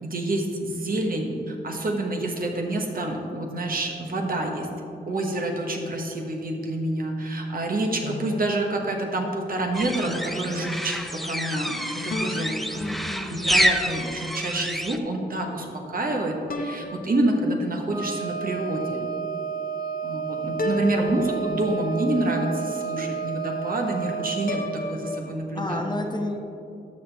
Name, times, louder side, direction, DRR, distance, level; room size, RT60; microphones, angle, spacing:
voice 1, 0.0-4.7 5.0-12.8 13.3-19.0 20.0-25.9, right 1 dB, 55° right, 1 dB, 1.2 m, -27 dB
sound 1, 8.0-9.7 12.1-13.8 16.5-18.0 20.6-22.2 24.5-25.3, left 2 dB, 60° left, 0.8 m, -35 dB
sound 2, 9.7-15.0, equal, ahead, 0.5 m, -28 dB
voice 2, 12.7-13.5 20.8-21.3 25.5-26.4, left 2 dB, 25° left, 3 dB, 0.8 m, -31 dB
Wind instrument woodwind instrument, 17.9-24.6, right 6 dB, 20° right, 1.3 m, -31 dB
12.5 x 6.2 x 3.5 m, 2.7 s
wide cardioid pair, 85°, 17 cm